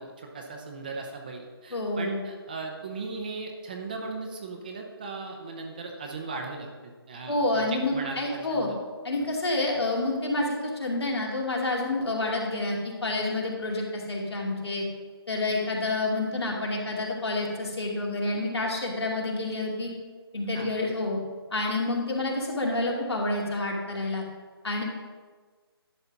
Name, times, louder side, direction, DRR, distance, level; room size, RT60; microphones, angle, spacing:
voice 1, 0.0-8.8 20.5-20.7, right 3 dB, 20° right, 2 dB, 0.6 m, -38 dB
voice 2, 1.7-2.2 7.3-8.7 9.0-14.8 15.3-19.9 20.3-21.2 21.5-24.2 24.6-24.8, left 2 dB, 80° left, -2 dB, 2.4 m, -28 dB
11.0 x 3.9 x 5.8 m, 1.4 s
figure-of-eight pair, 170°, 13 cm